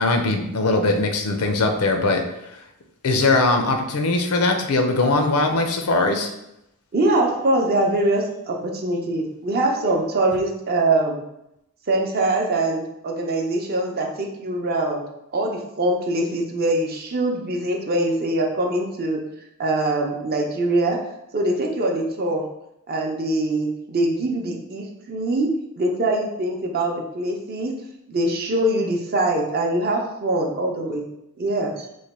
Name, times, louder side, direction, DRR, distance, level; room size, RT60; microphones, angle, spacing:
voice 1, 0.0-2.2 3.0-6.3, left 2 dB, 90° left, 5 dB, 0.6 m, -20 dB
voice 2, 6.9-11.2 11.9-15.0 15.3-19.2 19.6-21.0 21.3-22.5 22.9-27.7 28.1-31.1 31.4-31.9, right 2 dB, 45° right, 1 dB, 0.6 m, -23 dB
3.2 x 2.2 x 4.1 m, 0.84 s
head